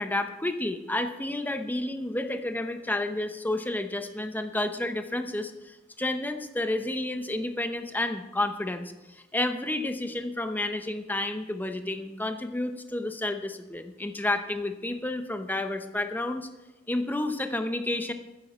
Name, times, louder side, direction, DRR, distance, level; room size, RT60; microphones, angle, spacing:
voice 1, 0.0-16.5 16.9-18.1, left 1 dB, 10° left, 7 dB, 0.8 m, -30 dB
13.0 x 10.0 x 4.3 m, 1.0 s
head